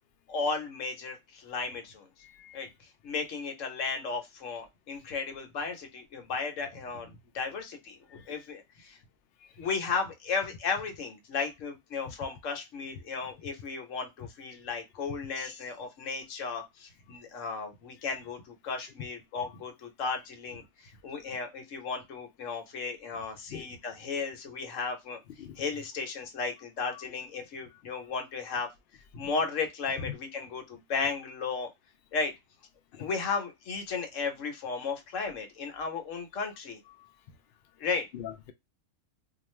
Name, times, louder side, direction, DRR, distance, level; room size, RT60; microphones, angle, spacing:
voice 1, 0.3-2.0 2.5-9.0 9.6-25.2 25.6-28.7 29.1-31.7 32.1-32.3 33.0-36.8 37.8-38.1, left 4 dB, 60° left, 1.1 m, -35 dB
voice 2, 2.2-2.7 8.1-8.3 9.4-9.5 16.6-16.7 23.5-23.7 25.4-25.6 26.9-27.0 30.1-30.2 32.9-33.1 37.0-37.1 38.1-38.5, left 10 dB, 75° left, 0.5 m, -43 dB
2.4 x 2.4 x 3.0 m
omnidirectional pair, 1.6 m